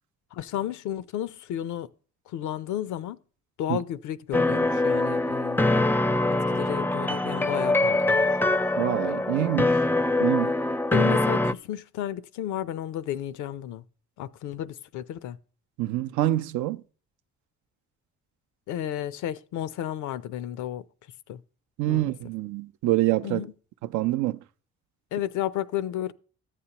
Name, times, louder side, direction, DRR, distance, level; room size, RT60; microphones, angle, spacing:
voice 1, 0.3-1.9 2.3-3.2 3.6-5.8 6.5-8.3 10.2-10.5 10.9-13.8 14.2-15.4 18.7-20.8 21.3-21.4 21.9-22.1 23.2-23.5 25.1-26.1, left 11 dB, 80° left, 0.6 m, -32 dB
sound 1, 4.3-11.5, left 2 dB, 5° left, 0.4 m, -23 dB
voice 2, 8.8-9.8 10.2-10.5 15.8-16.8 21.8-23.4 23.9-24.4, right 15 dB, 80° right, 0.5 m, -26 dB
13.5 x 8.4 x 2.9 m
supercardioid pair, 50°, 29 cm